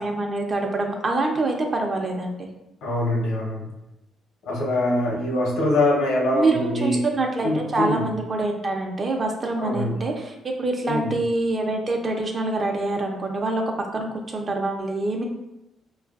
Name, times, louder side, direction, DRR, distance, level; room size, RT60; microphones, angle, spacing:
voice 1, 0.0-2.5 6.3-15.2, right 2 dB, 35° right, 2 dB, 0.6 m, -25 dB
voice 2, 2.8-3.7 4.4-7.1 7.4-8.1 9.6-9.9 10.9-11.1, left 1 dB, 85° left, -2 dB, 0.8 m, -23 dB
4.6 x 2.4 x 2.4 m, 0.92 s
cardioid pair, 90°, 0 cm